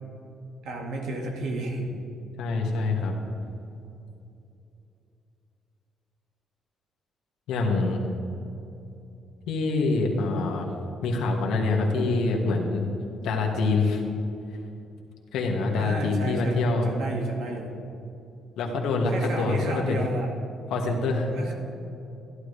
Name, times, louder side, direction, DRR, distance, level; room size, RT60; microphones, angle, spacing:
voice 1, 0.6-1.9 15.8-17.7 19.1-20.3 21.3-21.5, right 2 dB, 75° right, 0 dB, 1.9 m, -32 dB
voice 2, 2.4-3.1 7.5-8.0 9.5-10.7 11.0-12.8 13.2-14.0 15.3-16.9 18.6-20.0 20.7-21.3, left 3 dB, 85° left, 1 dB, 1.8 m, -25 dB
14.5 x 11.5 x 3.3 m, 2.8 s
cardioid pair, 120°, 0 cm